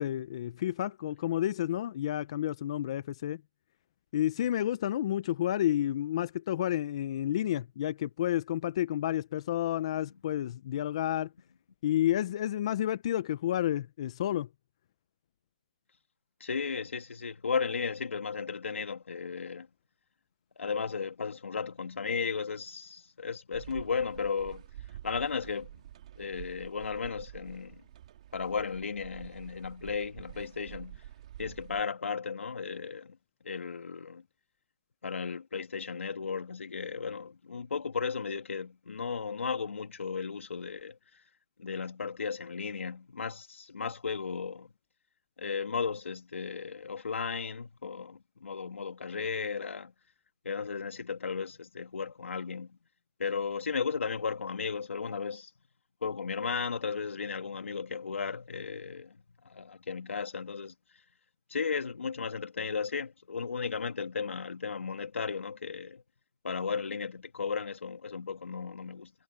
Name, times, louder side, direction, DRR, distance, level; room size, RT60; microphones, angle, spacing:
voice 1, 0.0-3.4 4.1-11.3 11.8-14.5, left 12 dB, 25° left, 0.5 m, -30 dB
voice 2, 16.4-19.7 20.6-24.7 25.0-25.7 26.2-27.8 28.3-31.0 31.4-33.2 33.4-34.2 35.0-41.0 41.6-44.7 45.4-49.9 50.4-52.8 53.2-55.5 56.0-59.2 59.4-60.7 61.5-66.0 66.4-69.1, left 5 dB, 70° left, 2.3 m, -35 dB
sound 1, 23.5-31.8, right 12 dB, 30° right, 2.1 m, -48 dB
hypercardioid pair, 170°, 7 cm